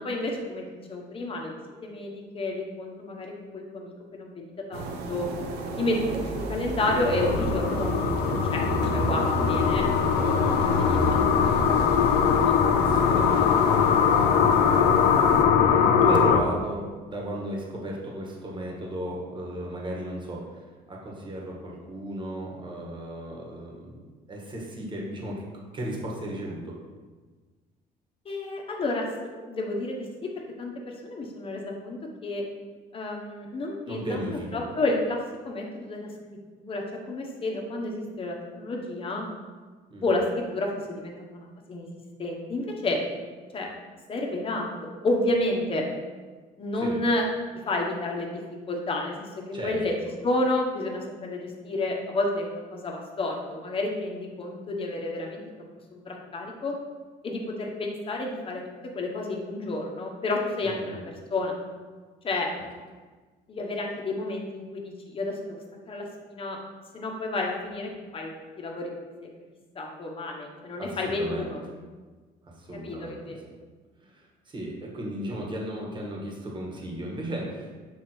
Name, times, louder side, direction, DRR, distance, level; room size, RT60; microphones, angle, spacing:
voice 1, 0.0-4.4 4.7-5.3 5.8-9.9 10.5-11.3 11.7-12.5 28.2-29.1 29.5-30.1 30.6-32.4 32.9-35.2 35.4-36.1 36.6-39.3 40.0-41.9 42.2-43.0 43.5-43.7 44.1-45.8 46.6-47.2 47.5-48.4 48.7-49.9 50.2-55.4 55.9-56.7 57.2-58.6 58.9-61.5 62.2-62.5 63.5-65.6 65.9-66.6 66.9-68.3 68.6-68.9 69.2-69.3 69.7-71.6 72.7-73.4, left 2 dB, 35° left, 0 dB, 1.1 m, -30 dB
sound 1, 4.7-15.4, right 2 dB, 75° right, 0.9 m, -31 dB
sound 2, 6.9-16.4, left 7 dB, 90° left, 0.5 m, -22 dB
voice 2, 12.7-23.9 24.3-25.5 25.7-26.7 33.9-34.7 39.9-40.0 46.7-47.0 49.5-50.1 60.6-61.0 70.8-71.5 72.5-73.4 74.0-77.9, right 1 dB, 30° right, -2 dB, 1.6 m, -35 dB
6.6 x 3.4 x 4.4 m, 1.4 s
cardioid pair, 110°, 17 cm